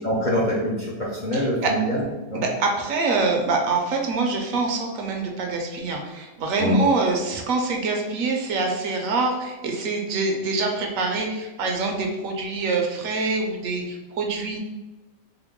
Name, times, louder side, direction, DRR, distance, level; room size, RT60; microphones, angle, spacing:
voice 1, 0.0-2.4 6.6-6.8, equal, 45° left, -6 dB, 0.6 m, -24 dB
voice 2, 1.3-1.7 2.3-14.6, right 3 dB, 70° right, 2 dB, 1.0 m, -25 dB
3.8 x 2.1 x 3.5 m, 1.1 s
omnidirectional pair, 1.5 m